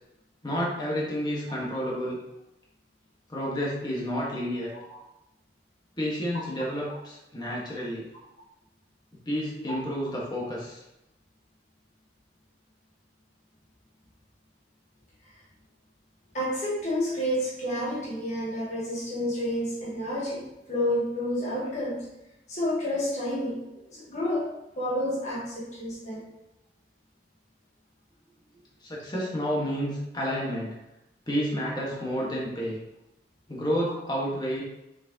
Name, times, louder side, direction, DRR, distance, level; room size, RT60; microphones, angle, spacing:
voice 1, 0.4-2.2 3.3-4.7 6.0-8.1 9.2-10.8 28.8-30.7 31.3-32.8 33.5-34.6, equal, 25° left, -4 dB, 1.4 m, -30 dB
voice 2, 16.3-22.0 22.5-23.6 23.9-24.5 24.8-26.2, equal, 40° left, -4 dB, 1.3 m, -29 dB
6.1 x 6.0 x 2.9 m, 0.90 s
head